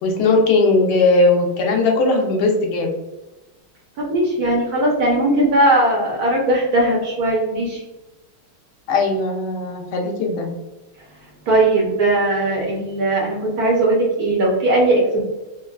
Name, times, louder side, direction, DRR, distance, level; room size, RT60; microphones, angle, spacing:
voice 1, 0.0-2.9 8.9-10.5, left 3 dB, 75° left, 1 dB, 1.4 m, -18 dB
voice 2, 4.0-7.8 11.5-15.2, right 1 dB, 70° right, -3 dB, 0.9 m, -18 dB
4.3 x 2.1 x 2.3 m, 1.1 s
omnidirectional pair, 2.4 m